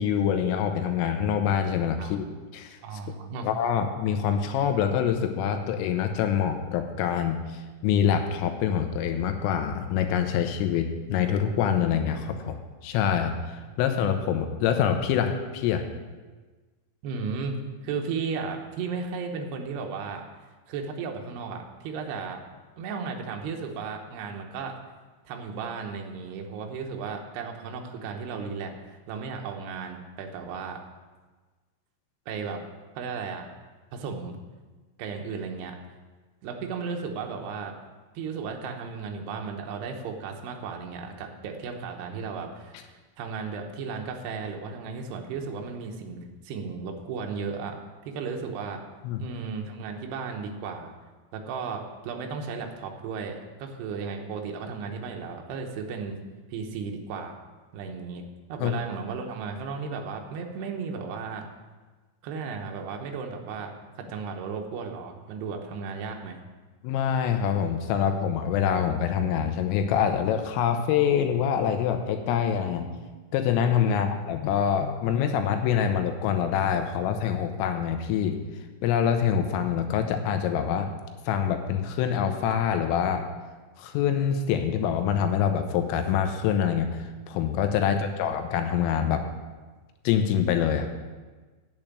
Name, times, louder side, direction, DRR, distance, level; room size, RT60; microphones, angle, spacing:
voice 1, 0.0-2.3 2.5-2.8 3.4-12.6 12.8-15.9 49.0-49.2 58.6-58.7 66.8-72.9 73.3-78.4 78.8-80.9 81.3-83.2 83.8-89.2 90.0-90.9, left 8 dB, 85° left, 6 dB, 3.4 m, -25 dB
voice 2, 2.8-3.5 17.0-20.2 20.7-22.4 22.8-24.8 25.3-30.8 32.3-32.6 33.0-33.5 33.9-34.4 35.0-35.8 36.4-37.8 38.1-47.8 48.1-48.8 49.2-50.9 51.3-56.2 56.5-57.3 57.7-58.2 58.5-61.5 62.2-63.7 64.0-66.4 73.9-74.1 87.8-88.2, right 5 dB, 75° right, 2 dB, 2.6 m, -35 dB
8.8 x 7.7 x 7.3 m, 1.3 s
omnidirectional pair, 5.9 m